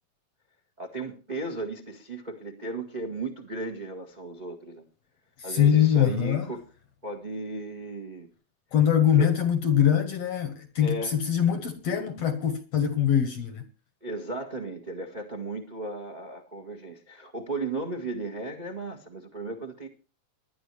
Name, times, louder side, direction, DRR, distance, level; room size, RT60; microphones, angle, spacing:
voice 1, 0.8-4.8 5.4-6.6 7.0-8.3 9.2-9.3 10.8-11.2 14.0-19.9, right 2 dB, 75° right, 0.4 m, -35 dB
voice 2, 5.5-6.5 8.7-13.6, left 9 dB, 65° left, 1.6 m, -23 dB
20.5 x 11.0 x 3.3 m
omnidirectional pair, 4.1 m